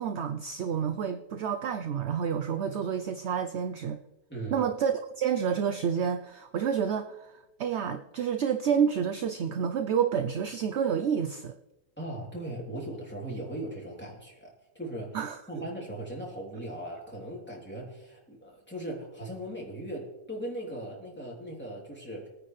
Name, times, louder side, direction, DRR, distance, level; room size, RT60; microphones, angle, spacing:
voice 1, 0.0-4.0 4.5-11.5 15.1-15.7, right 7 dB, 65° right, 8 dB, 0.7 m, -29 dB
voice 2, 4.3-4.6 12.0-15.2 15.5-22.3, right 1 dB, 5° left, -4 dB, 3.1 m, -38 dB
21.0 x 9.6 x 3.2 m, 0.97 s
omnidirectional pair, 1.7 m